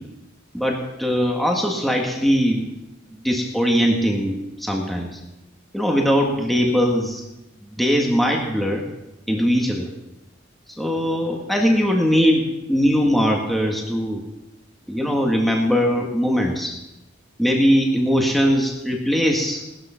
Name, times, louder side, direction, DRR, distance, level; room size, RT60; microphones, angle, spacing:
voice 1, 0.5-2.7 3.1-5.2 5.7-7.2 7.7-8.9 9.3-9.9 10.8-14.2 14.9-16.7 17.4-19.6, equal, ahead, 0 dB, 1.9 m, -20 dB
18.5 x 13.0 x 5.9 m, 0.92 s
head